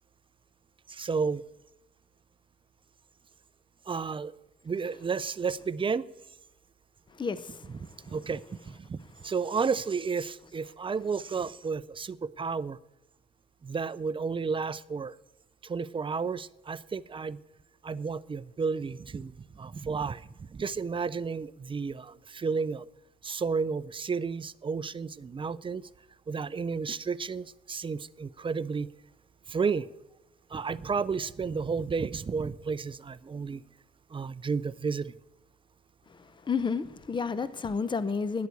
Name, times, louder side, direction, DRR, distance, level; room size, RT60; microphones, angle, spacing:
voice 1, 0.9-1.4 3.9-4.3 4.6-6.0 7.7-7.8 8.1-8.4 8.9-9.0 9.2-12.8 13.6-15.2 15.6-17.4 17.8-20.2 20.5-22.9 23.2-25.8 26.3-28.9 29.5-29.9 30.5-33.6 34.1-35.1, right 5 dB, 25° right, 0.5 m, -32 dB
voice 2, 7.1-8.1 36.1-38.5, left 5 dB, 25° left, 0.7 m, -32 dB
11.0 x 9.5 x 8.3 m
cardioid pair, 90°, 20 cm